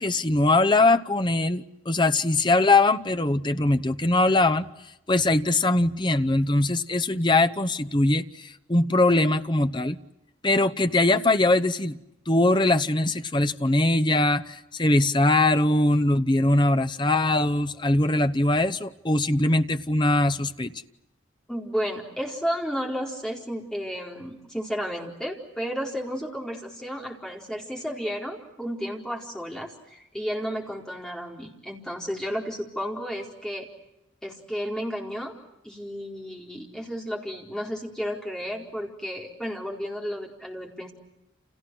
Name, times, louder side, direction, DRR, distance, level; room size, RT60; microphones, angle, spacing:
voice 1, 0.0-4.7 5.1-10.0 10.4-12.0 12.3-20.7, left 2 dB, 25° left, 10 dB, 0.9 m, -22 dB
voice 2, 21.5-33.7 34.2-35.3 35.6-40.9, equal, 5° left, 0 dB, 4.4 m, -32 dB
30.0 x 29.5 x 6.3 m, 0.90 s
head